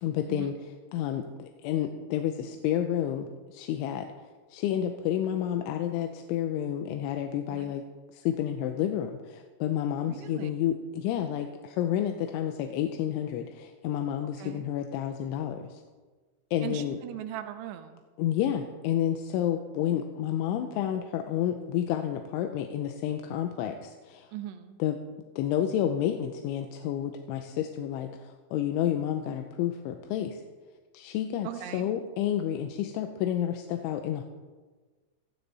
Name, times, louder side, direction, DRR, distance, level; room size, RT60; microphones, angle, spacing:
voice 1, 0.0-4.1 4.5-7.8 8.1-15.8 16.5-17.0 18.2-24.3 24.8-25.0 25.4-30.4 30.9-34.2, left 10 dB, 85° left, 5 dB, 3.1 m, -30 dB
voice 2, 7.5-7.8 10.1-10.5 14.4-14.7 16.6-18.0 24.3-24.8 31.4-31.9, right 11 dB, 80° right, 8 dB, 2.5 m, -39 dB
15.0 x 14.5 x 4.1 m, 1.3 s
omnidirectional pair, 5.5 m